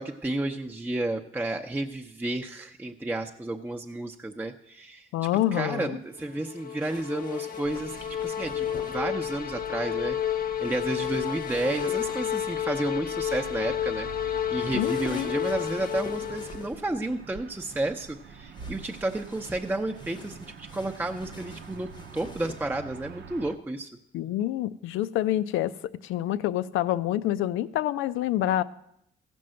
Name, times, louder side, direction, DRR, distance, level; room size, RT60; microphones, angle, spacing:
voice 1, 0.0-5.1 5.5-10.2 10.6-23.9, right 2 dB, 10° right, 3 dB, 0.7 m, -32 dB
voice 2, 5.1-6.0 14.7-15.3 24.1-25.7 26.0-28.6, left 13 dB, 90° left, 15 dB, 0.5 m, -27 dB
sound 1, 6.2-16.7, left 10 dB, 50° left, 0.7 m, -31 dB
sound 2, 6.8-9.0 10.6-12.5 14.6-16.9 18.5-22.7, left 3 dB, 20° left, 0.9 m, -47 dB
sound 3, 7.6-23.6, right 5 dB, 65° right, 0.7 m, -46 dB
15.0 x 5.3 x 7.7 m, 0.77 s
cardioid pair, 90°, 20 cm